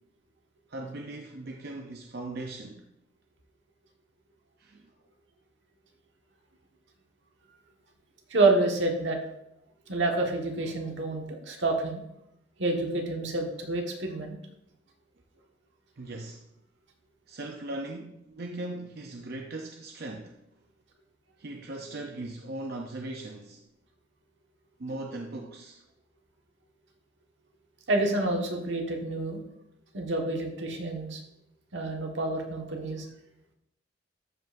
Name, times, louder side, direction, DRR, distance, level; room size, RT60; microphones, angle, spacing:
voice 1, 0.7-2.8 4.6-4.9 16.0-16.5 17.3-20.4 21.4-23.6 24.8-25.8, right 2 dB, 60° right, 1 dB, 0.7 m, -39 dB
voice 2, 8.3-9.2 9.9-12.0 12.6-14.3 27.9-29.4 29.9-31.2 31.7-33.1, right 2 dB, 80° right, 1 dB, 1.5 m, -28 dB
13.0 x 5.4 x 2.6 m, 0.82 s
head